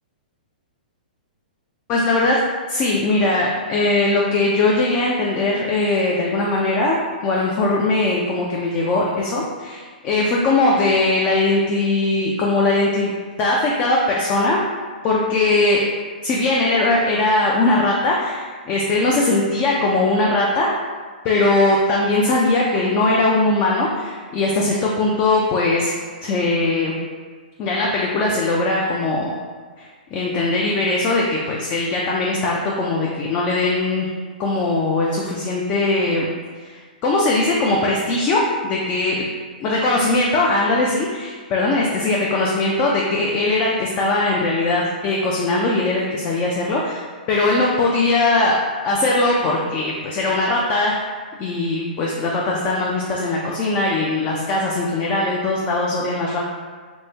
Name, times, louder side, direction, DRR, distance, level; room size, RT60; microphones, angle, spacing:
voice 1, 1.9-2.4 2.7-13.1 13.4-14.6 15.0-15.8 16.2-20.7 21.2-25.9 26.2-26.9 27.6-29.4 30.1-34.1 34.4-36.3 36.6-39.2 39.6-47.0 47.3-48.6 48.8-50.9 51.4-56.4, left 2 dB, 30° left, -3 dB, 0.4 m, -20 dB
3.0 x 2.0 x 3.3 m, 1.5 s
hypercardioid pair, 125°, 5 cm